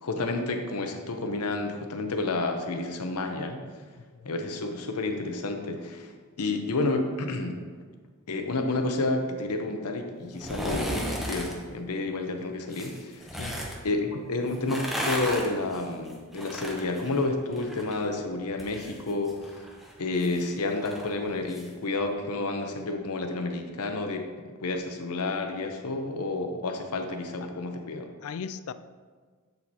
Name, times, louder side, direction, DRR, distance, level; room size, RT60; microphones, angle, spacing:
voice 1, 0.0-3.6 4.2-6.1 6.4-7.5 8.3-13.4 13.8-24.3 24.6-28.1, left 2 dB, 90° left, 5 dB, 0.8 m, -30 dB
sound 1, 10.3-11.5 12.7-13.8 14.5-18.0 18.3-21.7 22.0-22.1, equal, ahead, 0.8 m, -35 dB
voice 2, 28.2-28.7, left 7 dB, 70° left, 13 dB, 0.3 m, -38 dB
7.8 x 7.0 x 2.8 m, 1.5 s
head